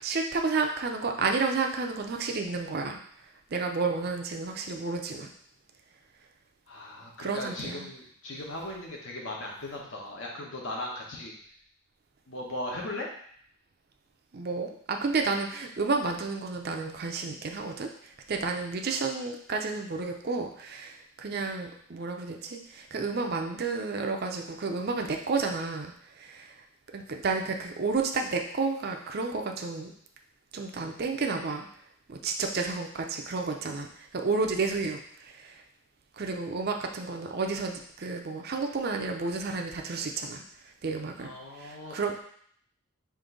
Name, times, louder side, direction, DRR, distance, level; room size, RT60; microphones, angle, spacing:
voice 1, 0.0-3.0 3.5-5.3 7.2-7.9 14.3-26.6 26.9-29.9 30.5-31.7 32.1-35.6 36.2-40.4 40.8-42.2, right 4 dB, 45° right, 3 dB, 0.5 m, -31 dB
voice 2, 6.7-11.3 12.3-13.1 41.2-42.0, left 1 dB, 60° left, -2 dB, 1.1 m, -38 dB
5.1 x 2.7 x 3.8 m, 0.62 s
head